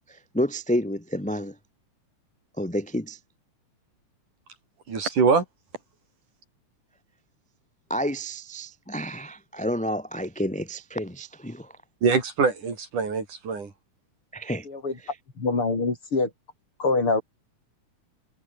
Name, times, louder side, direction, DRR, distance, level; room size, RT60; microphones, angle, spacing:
voice 1, 0.1-1.5 2.6-3.2 7.9-11.7 14.3-14.6 15.0-15.2, equal, 5° left, 1.4 m, -30 dB
voice 2, 4.9-5.4 12.0-13.7, right 5 dB, 80° right, 6.3 m, -23 dB
voice 3, 15.4-16.3 16.8-17.2, left 3 dB, 45° left, 5.5 m, -24 dB
omnidirectional pair, 3.6 m